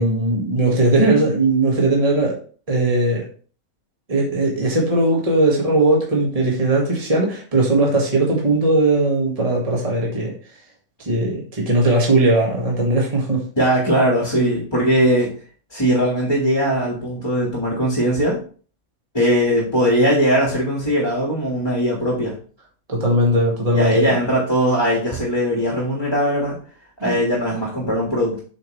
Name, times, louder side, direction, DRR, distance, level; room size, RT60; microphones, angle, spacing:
voice 1, 0.0-2.4 2.7-3.2 4.1-10.3 11.0-13.4 22.9-24.2 27.0-27.2, right 2 dB, 25° right, -2 dB, 1.8 m, -18 dB
voice 2, 13.6-15.3 15.7-18.4 19.1-22.4 23.7-26.6 27.0-28.4, equal, 15° left, -2 dB, 1.6 m, -19 dB
7.6 x 5.2 x 3.2 m, 0.41 s
omnidirectional pair, 1.6 m